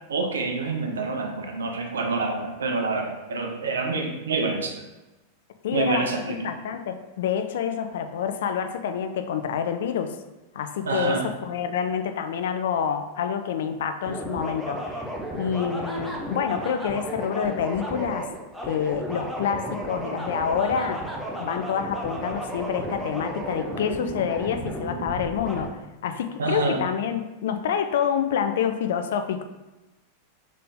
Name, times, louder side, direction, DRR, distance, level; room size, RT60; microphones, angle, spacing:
voice 1, 0.1-4.7 5.7-6.5 10.9-11.3 26.4-26.8, right 4 dB, 70° right, 3 dB, 0.7 m, -27 dB
voice 2, 5.6-10.2 10.5-15.0 15.3-18.3 18.6-21.1 21.4-29.4, left 7 dB, 60° left, 8 dB, 0.4 m, -27 dB
sound 1, 14.0-25.7, right 1 dB, ahead, 0.8 m, -33 dB
3.7 x 3.7 x 3.5 m, 1.1 s
figure-of-eight pair, 90°, 0 cm